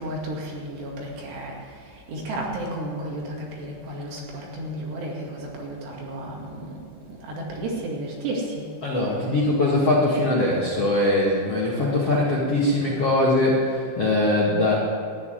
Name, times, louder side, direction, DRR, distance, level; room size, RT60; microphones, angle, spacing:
voice 1, 0.0-1.5 2.1-6.7 7.2-8.6 12.1-12.2, right 1 dB, 65° right, -2 dB, 4.2 m, -32 dB
voice 2, 8.8-14.7, left 1 dB, 50° left, -5 dB, 1.8 m, -21 dB
13.0 x 10.5 x 9.3 m, 2.3 s
omnidirectional pair, 5.6 m